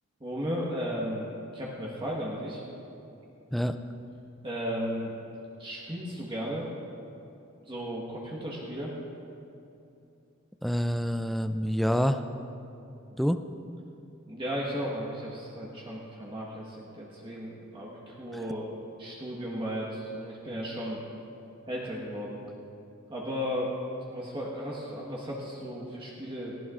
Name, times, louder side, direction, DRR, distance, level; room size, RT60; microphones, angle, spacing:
voice 1, 0.2-2.6 4.4-5.2 5.6-6.7 7.7-8.9 14.3-18.7 19.0-21.0 21.7-22.4 23.1-23.7 24.1-26.5, equal, 25° right, -4 dB, 1.3 m, -35 dB
voice 2, 10.6-12.2 13.2-13.4, equal, ahead, 9 dB, 0.3 m, -27 dB
18.5 x 15.5 x 2.5 m, 2.8 s
head